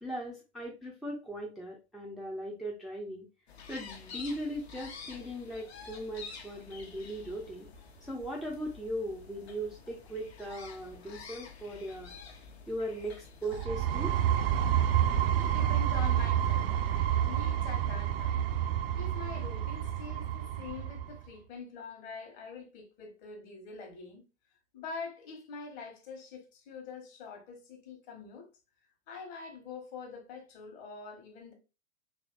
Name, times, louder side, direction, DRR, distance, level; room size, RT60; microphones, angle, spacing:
voice 1, 0.0-3.3 3.7-7.7 8.0-12.1 12.7-14.2, equal, ahead, 0.4 m, -38 dB
sound 1, 3.5-13.7, left 5 dB, 65° left, 1.0 m, -49 dB
sound 2, 13.5-21.2, right 10 dB, 55° right, 0.5 m, -29 dB
voice 2, 15.3-16.8 17.2-24.2 24.7-28.5 29.1-31.5, left 4 dB, 45° left, 1.3 m, -45 dB
3.4 x 3.0 x 2.3 m
figure-of-eight pair, 95°, 34 cm